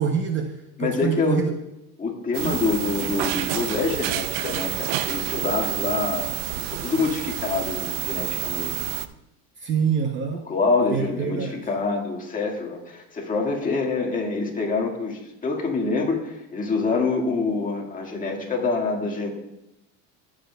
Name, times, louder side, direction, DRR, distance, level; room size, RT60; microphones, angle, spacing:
voice 1, 0.0-1.5 9.6-10.5 10.9-11.6, right 7 dB, 30° right, 4 dB, 0.7 m, -25 dB
voice 2, 0.8-1.4 2.0-8.9 10.5-19.3, left 4 dB, 20° left, 0 dB, 1.7 m, -26 dB
sound 1, 2.3-9.1, right 14 dB, 85° right, 0.6 m, -29 dB
15.5 x 7.5 x 2.2 m, 0.88 s
cardioid pair, 135°, 37 cm